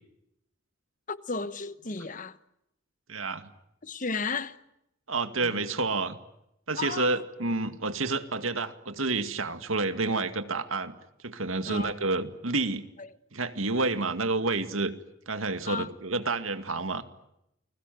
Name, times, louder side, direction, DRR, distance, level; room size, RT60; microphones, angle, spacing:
voice 1, 1.1-2.4 3.8-4.6 5.4-5.6 6.8-7.2 11.7-11.9 13.0-13.1 15.7-15.9, left 4 dB, 40° left, 1.1 m, -34 dB
voice 2, 3.1-3.5 5.1-6.2 6.7-10.9 11.2-12.8 13.3-14.9 15.3-17.1, right 3 dB, 85° right, 2.2 m, -29 dB
29.5 x 21.5 x 9.4 m
head